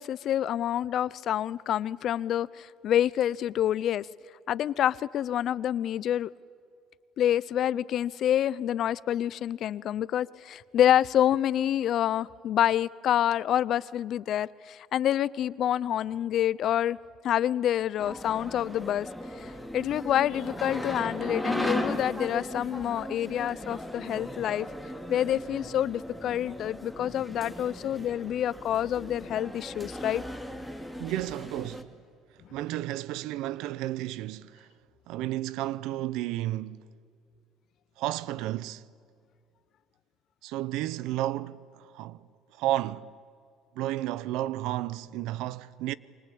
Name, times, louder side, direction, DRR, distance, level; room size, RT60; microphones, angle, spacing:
voice 1, 0.0-4.1 4.5-6.3 7.2-17.0 17.2-19.1 19.4-24.7 25.1-30.2, left 11 dB, 55° left, 0.6 m, -27 dB
sound 1, 18.0-31.8, equal, ahead, 2.4 m, -37 dB
voice 2, 31.0-31.9 32.5-34.7 35.1-36.8 38.0-38.8 40.4-42.3 42.6-43.1 43.8-45.9, right 14 dB, 80° right, 0.7 m, -32 dB
28.0 x 24.0 x 8.6 m
cardioid pair, 100°, 0 cm